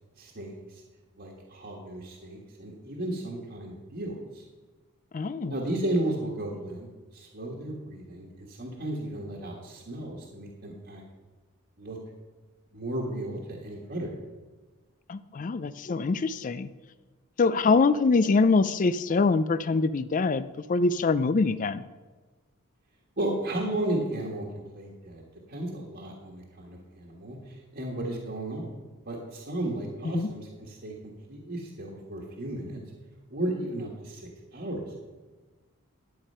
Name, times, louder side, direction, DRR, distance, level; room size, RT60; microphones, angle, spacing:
voice 1, 0.2-0.8 1.2-4.4 5.5-6.9 7.1-11.0 11.8-12.0 12.7-14.1 23.2-24.5 24.7-25.2 25.5-28.7 29.1-30.9 31.3-32.8 33.3-35.0, right 1 dB, 50° right, -2 dB, 1.5 m, -34 dB
voice 2, 5.1-5.5 15.1-16.7 17.4-21.8 30.0-30.3, left 4 dB, 35° left, 14 dB, 0.4 m, -24 dB
12.0 x 8.4 x 5.6 m, 1.3 s
head